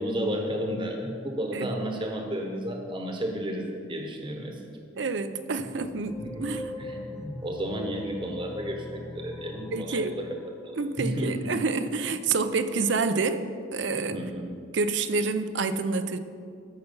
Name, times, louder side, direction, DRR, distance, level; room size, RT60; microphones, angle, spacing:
voice 1, 0.0-4.6 6.2-10.2 10.6-11.6 14.1-14.5, equal, 25° right, 3 dB, 1.1 m, -32 dB
voice 2, 5.0-6.7 9.7-10.2 10.8-13.5 13.7-14.3 14.7-16.2, right 4 dB, 70° right, 10 dB, 0.6 m, -28 dB
sound 1, 5.8-12.0, left 2 dB, 15° left, 0.4 m, -41 dB
13.5 x 5.8 x 5.4 m, 2.2 s
head